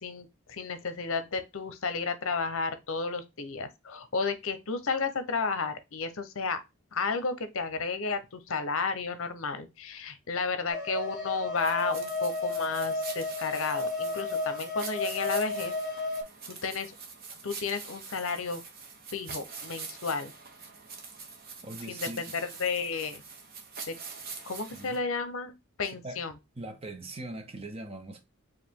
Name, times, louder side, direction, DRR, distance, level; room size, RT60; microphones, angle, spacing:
voice 1, 0.0-6.6 6.9-15.7 16.6-16.9 17.4-18.6 19.1-20.3 21.9-22.3 22.6-23.2 23.9-24.0 24.4-26.3, left 4 dB, 65° left, 0.7 m, -32 dB
sound 1, 10.7-16.2, left 2 dB, ahead, 2.1 m, -33 dB
sound 2, 11.6-25.0, right 5 dB, 45° right, 1.0 m, -44 dB
voice 2, 21.6-22.3 24.7-25.0 25.8-26.2 26.6-28.3, right 1 dB, 25° right, 0.7 m, -41 dB
4.8 x 2.6 x 3.6 m
head